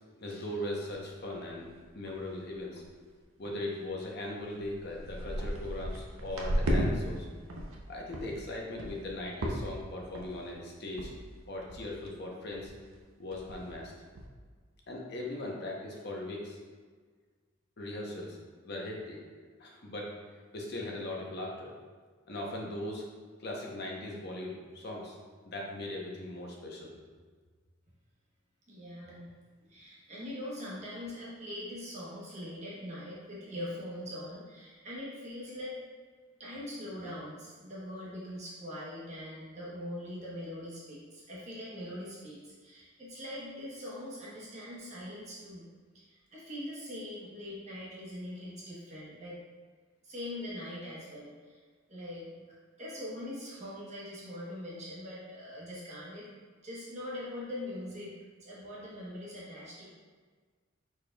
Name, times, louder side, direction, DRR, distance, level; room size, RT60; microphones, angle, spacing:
voice 1, 0.0-2.8 3.4-7.3 7.9-11.1 11.5-12.7 13.2-13.9 14.9-16.6 17.8-18.4 18.6-19.2 19.6-20.1 20.5-21.7 22.3-23.0 23.4-25.2 25.4-26.9, left 1 dB, 50° left, -1 dB, 0.7 m, -39 dB
sound 1, 1.5-1.6 1.8-2.3 2.6-2.8 3.4-3.5 4.2-4.3 4.6-6.9 7.2-7.8 8.1-8.3 8.8-9.1 9.4-9.8 10.1-10.5 11.0-11.1 11.4-11.5 11.7-12.1 12.5-12.7 13.0-13.1 13.3-13.7 14.1-14.3, equal, 85° right, 0.6 m, -34 dB
voice 2, 28.7-29.3 29.7-35.8 36.4-45.6 45.9-49.4 50.0-51.6 51.9-52.3 52.8-56.3 56.6-58.1 58.4-59.8, left 1 dB, 35° right, -7 dB, 1.0 m, -42 dB
5.0 x 4.3 x 2.3 m, 1.5 s
head